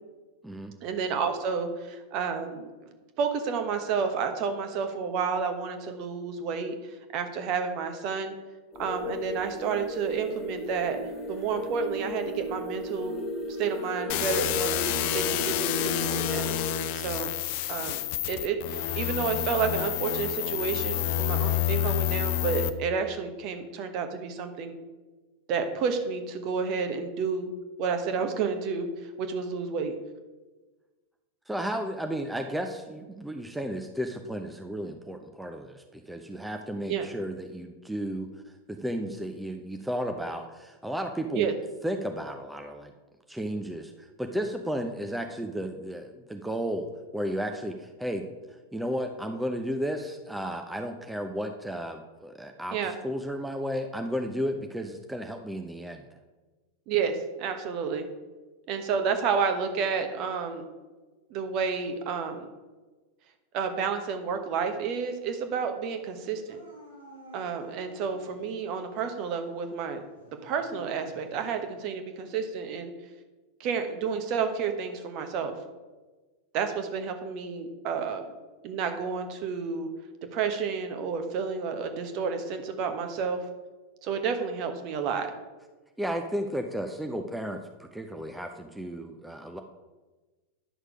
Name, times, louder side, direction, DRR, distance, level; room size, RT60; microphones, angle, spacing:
voice 1, 0.8-2.7 3.2-8.3 8.8-11.0 11.3-13.1 13.5-17.3 17.7-24.8 25.5-27.5 27.8-29.9 36.9-37.1 41.3-41.5 52.7-52.9 56.9-58.1 58.7-60.7 61.3-62.5 63.5-66.6 67.3-70.0 70.4-72.9 73.6-75.6 76.5-78.3 78.6-79.9 80.3-83.5 84.0-85.3, right 6 dB, 40° right, 7 dB, 1.2 m, -30 dB
sound 1, 8.7-16.7, left 1 dB, 30° left, 1.9 m, -35 dB
sound 2, 14.1-22.7, left 12 dB, 45° left, 0.5 m, -29 dB
voice 2, 31.5-38.3 38.7-41.5 41.8-42.9 43.3-46.9 47.1-48.3 48.7-56.0 86.0-89.6, equal, 5° right, 5 dB, 0.7 m, -33 dB
Dog / Siren, 66.5-68.6 69.0-69.1 70.1-71.6, equal, 80° right, 2.9 m, -49 dB
10.0 x 6.4 x 5.0 m, 1.2 s
figure-of-eight pair, 90°, 0 cm